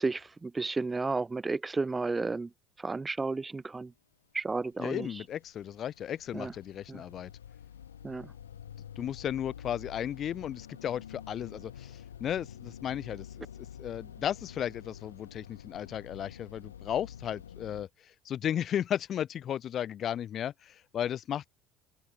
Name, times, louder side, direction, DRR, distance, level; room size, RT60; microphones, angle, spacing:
voice 1, 0.0-2.5 2.8-3.9 4.3-5.1 6.3-6.5 6.9-7.0 8.0-8.3, right 3 dB, 20° right, 0.7 m, -32 dB
sound 1, 4.7-17.8, left 9 dB, 80° left, 1.3 m, -48 dB
voice 2, 4.8-7.3 9.0-21.5, left 10 dB, 45° left, 2.8 m, -35 dB
figure-of-eight pair, 65°, 0 cm